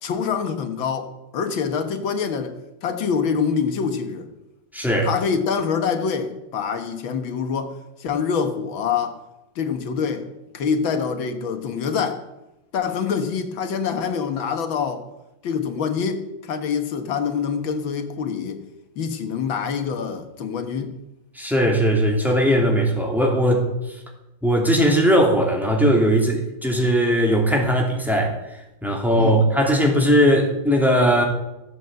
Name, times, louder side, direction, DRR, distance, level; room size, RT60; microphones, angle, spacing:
voice 1, 0.0-4.3 5.0-9.2 9.6-10.3 10.5-12.2 12.7-15.1 15.4-18.6 19.0-21.0 29.2-29.4, left 6 dB, 80° left, 2.1 m, -25 dB
voice 2, 4.7-5.1 21.4-23.6 24.4-28.4 28.8-31.2, equal, ahead, 2.7 m, -19 dB
15.0 x 8.1 x 7.6 m
omnidirectional pair, 2.1 m